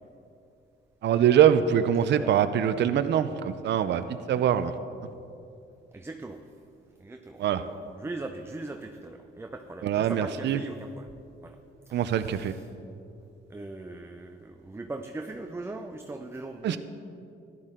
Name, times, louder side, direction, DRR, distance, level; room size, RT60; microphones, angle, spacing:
voice 1, 1.0-4.7 7.4-7.6 9.8-10.6 11.9-12.5 16.6-16.8, right 9 dB, 60° right, 11 dB, 0.6 m, -23 dB
voice 2, 5.9-6.4 7.0-11.1 11.4-11.6 11.9-12.7 13.5-16.8, right 2 dB, 10° right, 5 dB, 0.6 m, -40 dB
13.5 x 11.0 x 3.8 m, 2.6 s
cardioid pair, 90°, 20 cm